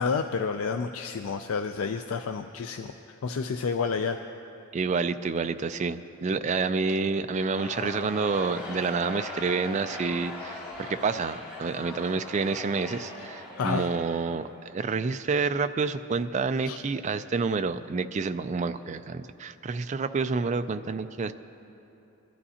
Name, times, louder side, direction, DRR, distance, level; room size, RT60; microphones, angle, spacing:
voice 1, 0.0-2.9 3.2-4.2 13.6-13.9 16.7-16.8, left 5 dB, 75° left, 6 dB, 0.4 m, -29 dB
voice 2, 4.7-21.3, right 4 dB, 35° right, 10 dB, 0.3 m, -28 dB
Crowd, 7.3-14.6, left 2 dB, 45° left, 3.6 m, -40 dB
21.5 x 12.5 x 2.8 m, 3.0 s
head